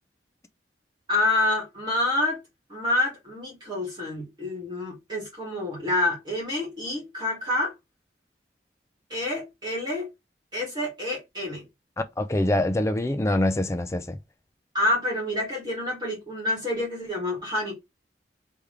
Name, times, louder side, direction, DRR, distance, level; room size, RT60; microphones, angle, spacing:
voice 1, 1.1-2.4 2.7-7.7 9.1-10.1 10.5-11.6 14.7-17.7, left 2 dB, 25° right, 1.9 m, -27 dB
voice 2, 12.0-14.2, left 1 dB, 15° left, 0.4 m, -25 dB
3.5 x 3.4 x 3.2 m
head